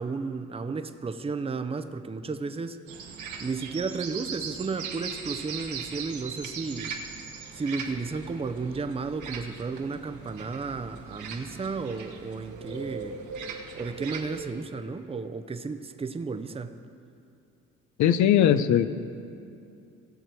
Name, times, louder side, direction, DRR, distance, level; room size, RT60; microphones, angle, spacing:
voice 1, 0.0-2.8 3.4-7.0 7.5-13.2 13.7-16.8, right 4 dB, 20° right, 8 dB, 0.6 m, -33 dB
sound 1, 2.9-14.5, right 6 dB, 75° right, 1.3 m, -39 dB
voice 2, 18.0-18.9, left 10 dB, 70° left, 12 dB, 0.6 m, -20 dB
18.0 x 6.6 x 4.6 m, 2.6 s
cardioid pair, 90°, 30 cm